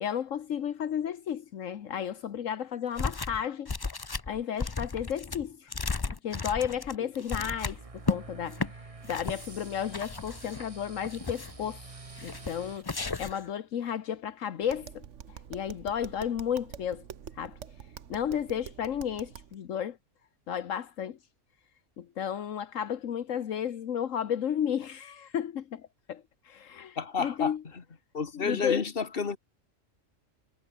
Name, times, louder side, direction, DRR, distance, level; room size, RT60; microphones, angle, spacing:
voice 1, 0.0-3.7 4.3-5.7 6.1-17.0 17.3-17.6 18.1-20.0 20.5-21.2 22.0-27.6 28.3-28.8, left 9 dB, 80° left, 1.3 m, -33 dB
sound 1, 3.0-3.4 3.7-8.2 8.5-8.7 9.1-9.5 9.9-10.7 11.0-11.6 12.2-12.6 12.8-13.5, left 4 dB, 25° left, 0.6 m, -34 dB
sound 2, 7.7-12.8, right 3 dB, 25° right, 1.4 m, -47 dB
Tap, 14.6-19.6, right 8 dB, 65° right, 1.4 m, -46 dB
voice 2, 27.0-27.5 28.1-29.4, left 5 dB, 45° left, 1.9 m, -30 dB
omnidirectional pair, 1.3 m